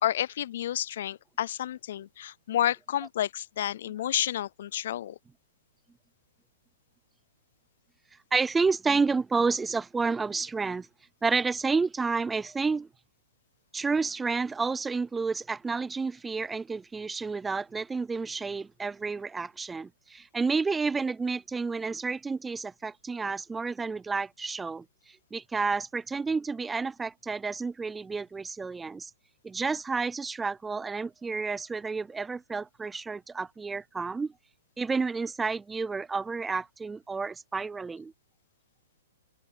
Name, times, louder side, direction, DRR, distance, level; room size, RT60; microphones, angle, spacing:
voice 1, 0.0-5.2, left 11 dB, 60° left, 0.4 m, -30 dB
voice 2, 8.3-10.9 11.2-12.9 13.7-24.8 25.3-29.1 29.4-34.3 34.8-38.1, right 4 dB, 10° right, 0.3 m, -30 dB
open air
hypercardioid pair, 150°, 0 cm